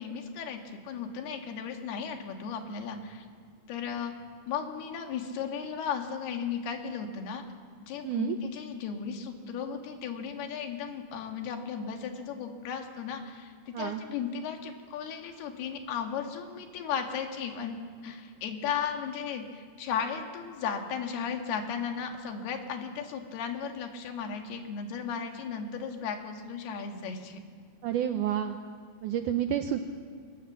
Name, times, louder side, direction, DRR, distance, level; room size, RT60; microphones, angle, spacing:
voice 1, 0.0-3.3 3.7-4.1 4.5-7.4 7.8-17.8 18.0-27.4, left 7 dB, 90° left, 4 dB, 3.7 m, -35 dB
voice 2, 8.0-8.4 13.7-14.0 27.8-28.6 29.0-29.8, right 10 dB, 75° right, 7 dB, 1.9 m, -29 dB
22.0 x 20.5 x 7.3 m, 2.1 s
omnidirectional pair, 4.4 m